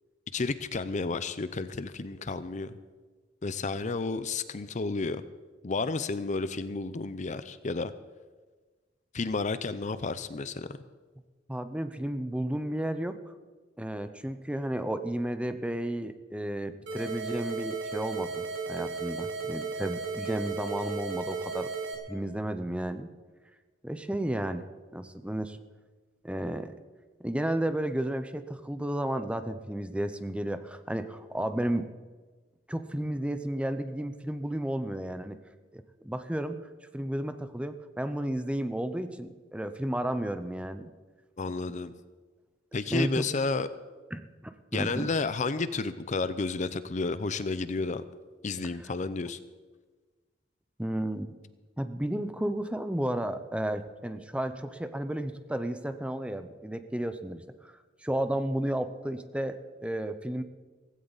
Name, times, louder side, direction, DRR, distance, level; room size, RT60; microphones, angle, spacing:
voice 1, 0.3-2.7 3.4-5.2 5.6-7.9 9.1-10.7 41.4-41.9 42.7-43.7 44.7-48.0 48.4-49.4, left 3 dB, 40° left, 14 dB, 0.6 m, -31 dB
voice 2, 11.5-13.3 13.8-21.7 22.1-23.1 23.8-25.6 26.2-26.7 27.2-31.9 32.7-35.4 35.7-36.6 36.9-40.9 42.9-43.2 44.1-45.1 48.8-48.9 50.8-51.3 51.8-60.4, right 1 dB, 5° right, 10 dB, 0.6 m, -33 dB
sound 1, 16.9-21.9, right 4 dB, 70° right, 2.9 m, -35 dB
16.5 x 16.0 x 4.0 m, 1.3 s
head